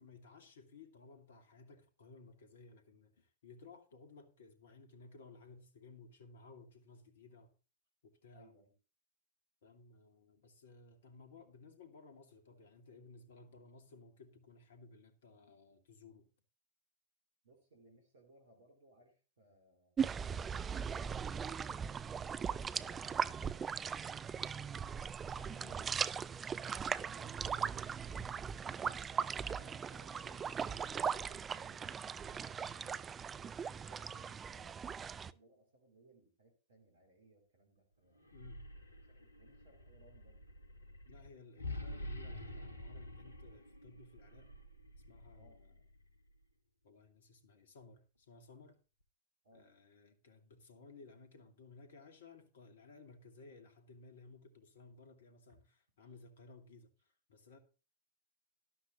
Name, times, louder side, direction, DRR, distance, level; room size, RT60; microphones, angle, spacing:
voice 1, 0.0-7.5 8.0-8.5 9.6-16.3 25.3-25.9 27.2-27.6 38.3-38.7 41.1-44.5 45.1-45.7 46.8-48.8 49.5-56.9 57.3-57.6, left 3 dB, 65° left, 2.4 m, -58 dB
voice 2, 8.3-8.7 17.4-20.0 29.6-33.2 33.7-38.3 39.1-40.5 45.3-45.6 49.4-49.8 55.5-55.6 56.0-56.1, right 1 dB, 65° right, 3.0 m, -66 dB
sound 1, 20.0-35.3, right 7 dB, 20° right, 0.5 m, -39 dB
sound 2, 38.2-46.3, left 1 dB, 80° left, 1.5 m, -48 dB
12.5 x 12.0 x 3.1 m
figure-of-eight pair, 90°, 0 cm